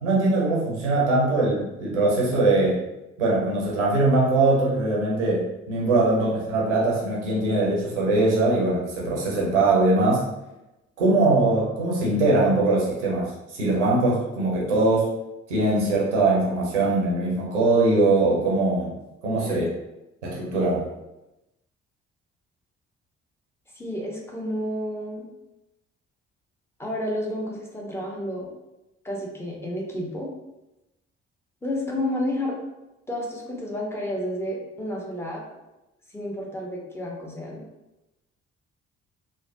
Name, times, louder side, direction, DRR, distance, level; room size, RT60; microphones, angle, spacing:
voice 1, 0.0-2.8 3.2-10.2 11.0-15.1 15.5-18.9 19.2-19.7 20.2-20.9, right 2 dB, 85° right, -5 dB, 0.7 m, -21 dB
voice 2, 23.7-25.3 26.8-28.5 29.0-30.3 31.6-32.5 33.1-35.4 36.1-37.6, left 1 dB, 5° left, -3 dB, 0.9 m, -30 dB
3.1 x 2.1 x 2.6 m, 0.96 s
figure-of-eight pair, 40°, 34 cm